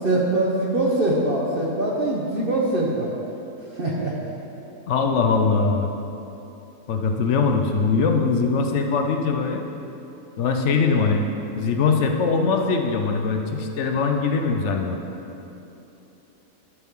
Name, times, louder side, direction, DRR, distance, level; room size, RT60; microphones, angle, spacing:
voice 1, 0.0-3.1 3.8-4.1 7.4-7.5 10.9-11.1, right 1 dB, 45° right, -4 dB, 0.9 m, -23 dB
voice 2, 4.9-5.9 6.9-9.6 10.4-11.2 11.6-15.0, left 4 dB, 60° left, 4 dB, 0.9 m, -21 dB
11.5 x 6.1 x 3.6 m, 3.0 s
omnidirectional pair, 1.5 m